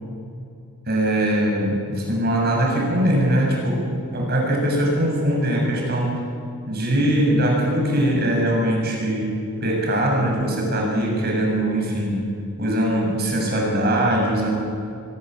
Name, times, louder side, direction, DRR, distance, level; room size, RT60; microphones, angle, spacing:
voice 1, 0.9-6.2 6.7-9.3 9.6-12.3 12.6-14.5, right 1 dB, 45° right, -2 dB, 7.2 m, -21 dB
25.0 x 17.0 x 7.8 m, 2.6 s
head